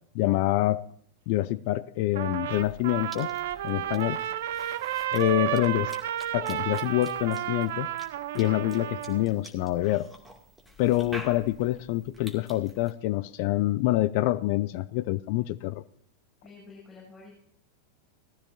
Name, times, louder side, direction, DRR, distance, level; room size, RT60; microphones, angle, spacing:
voice 1, 0.1-0.8 1.3-3.3 3.6-4.2 5.1-5.9 6.3-7.9 8.3-10.1 10.8-15.8, left 16 dB, 45° left, 0.4 m, -26 dB
Trumpet, 2.1-9.3, right 12 dB, 55° right, 0.6 m, -32 dB
Cough / Chewing mastication, 2.5-12.9, equal, ahead, 2.2 m, -49 dB
voice 2, 16.4-17.4, left 4 dB, 20° left, 7.1 m, -49 dB
18.0 x 14.5 x 2.6 m
figure-of-eight pair, 90°, 0 cm